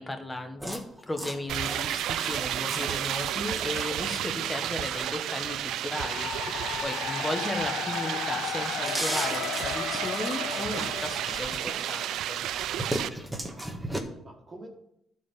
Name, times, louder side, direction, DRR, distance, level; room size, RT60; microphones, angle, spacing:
voice 1, 0.0-12.4, left 1 dB, 15° left, 5 dB, 1.5 m, -35 dB
sound 1, 0.6-7.7 8.1-12.1 12.5-14.0, right 1 dB, 5° right, 1.6 m, -38 dB
sound 2, 1.5-13.1, right 11 dB, 85° right, 0.4 m, -32 dB
sound 3, 5.9-12.1, left 11 dB, 85° left, 0.4 m, -35 dB
voice 2, 13.3-14.7, right 2 dB, 35° right, -3 dB, 2.0 m, -49 dB
11.5 x 4.7 x 7.1 m, 0.78 s
cardioid pair, 90°, 0 cm